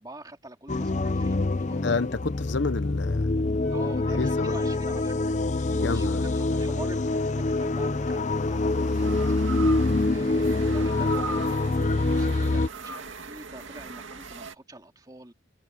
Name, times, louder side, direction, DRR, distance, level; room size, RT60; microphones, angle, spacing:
voice 1, 0.0-1.9 3.7-9.2 9.6-15.3, right 1 dB, 20° right, 2.9 m, -45 dB
sound 1, 0.7-12.7, left 2 dB, 35° left, 0.6 m, -25 dB
voice 2, 1.8-3.3 4.1-4.5 5.8-6.3, left 3 dB, 60° left, 0.9 m, -29 dB
sound 2, 3.6-5.1 7.0-14.5, right 4 dB, 70° right, 2.3 m, -41 dB
head